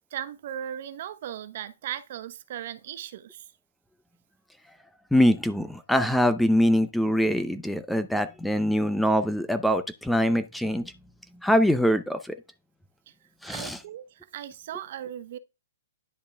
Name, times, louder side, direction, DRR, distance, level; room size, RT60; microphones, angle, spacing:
voice 1, 0.0-3.5 13.1-13.2 13.4-15.4, right 10 dB, 50° right, 0.9 m, -37 dB
voice 2, 5.1-10.9 11.4-12.4 13.4-13.8, equal, ahead, 0.6 m, -23 dB
10.5 x 4.6 x 3.5 m
hypercardioid pair, 150°, 0 cm